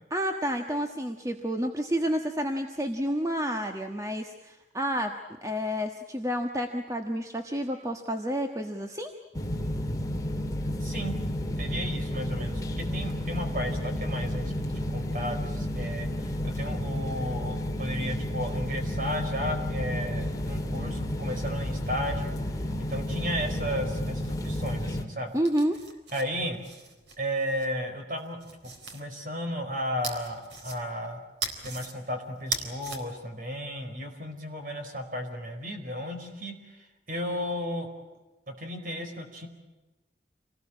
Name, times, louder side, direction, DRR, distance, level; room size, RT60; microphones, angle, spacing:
voice 1, 0.1-5.1 5.4-9.1 25.3-25.8, equal, 20° right, 4 dB, 1.3 m, -30 dB
sound 1, 9.3-25.0, left 1 dB, 20° left, 2.0 m, -31 dB
voice 2, 10.8-11.2 11.6-22.3 22.8-25.3 26.1-26.6 27.2-31.2 31.6-37.9 38.5-39.5, equal, 45° right, 5 dB, 4.6 m, -34 dB
sound 2, 25.3-27.7 28.2-29.0 30.0-31.1 31.4-31.9 32.4-33.0, right 4 dB, 80° right, 4.0 m, -38 dB
27.5 x 19.5 x 8.7 m, 1.1 s
head